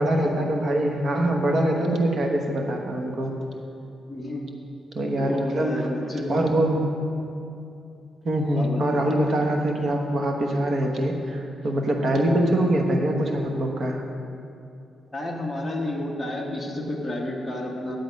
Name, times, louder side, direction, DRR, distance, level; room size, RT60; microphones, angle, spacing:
voice 1, 0.0-3.3 4.9-5.9 6.3-6.8 8.2-14.0, right 1 dB, 40° right, 2 dB, 1.1 m, -23 dB
voice 2, 4.1-4.5 5.2-6.4 8.5-9.0 15.1-18.0, left 1 dB, 5° left, -4 dB, 1.4 m, -31 dB
10.5 x 7.9 x 5.2 m, 2.7 s
wide cardioid pair, 175°, 0 cm